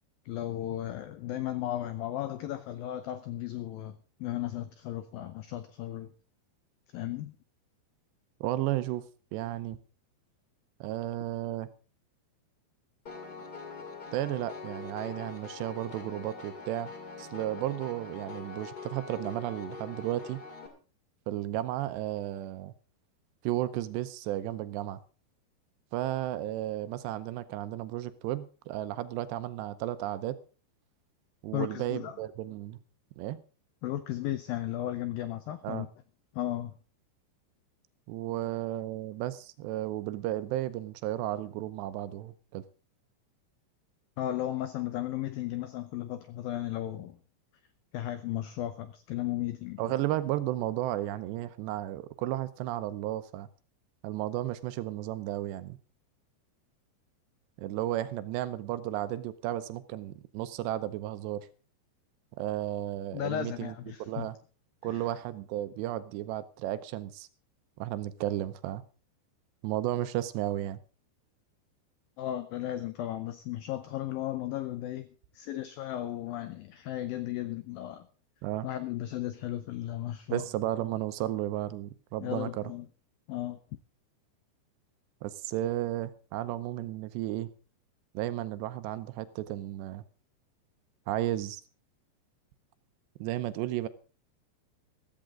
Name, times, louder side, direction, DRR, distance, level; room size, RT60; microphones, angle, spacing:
voice 1, 0.3-6.1 6.9-7.4 31.5-32.2 33.8-35.9 36.3-36.7 44.2-47.2 47.9-49.8 63.1-64.3 64.8-65.1 72.2-75.1 75.3-78.1 78.6-80.4 82.2-82.9 83.3-83.6, left 13 dB, 85° left, 2.0 m, -35 dB
voice 2, 8.4-9.0 9.3-9.8 10.8-11.7 14.1-16.9 17.2-20.4 21.3-22.7 23.4-25.0 25.9-30.4 31.4-32.8 33.2-33.4 35.6-35.9 38.1-42.6 49.8-53.5 54.0-55.8 57.6-61.5 62.4-63.7 64.0-64.4 64.8-67.3 67.8-68.8 69.6-70.8 78.4-78.7 80.3-82.6 85.2-87.5 88.1-90.0 91.1-91.6 93.2-93.9, right 14 dB, 80° right, 2.9 m, -33 dB
Piano, 13.1-20.7, left 4 dB, 35° left, 1.8 m, -43 dB
15.0 x 14.0 x 3.7 m
omnidirectional pair, 5.1 m